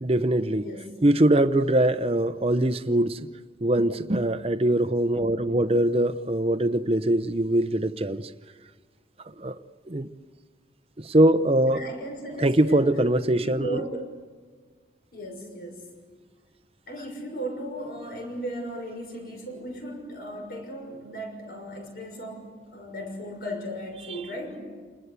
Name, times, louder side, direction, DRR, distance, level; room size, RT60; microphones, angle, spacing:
voice 1, 0.0-0.7 1.0-3.2 3.6-8.3 9.4-9.6 9.9-10.1 11.0-11.8 12.4-13.8 24.0-24.1, right 1 dB, 30° right, 0.8 m, -22 dB
voice 2, 0.6-1.0 11.7-13.0 13.3-14.0 15.1-15.9 16.9-24.6, equal, 55° left, 6.4 m, -36 dB
30.0 x 20.5 x 8.3 m
head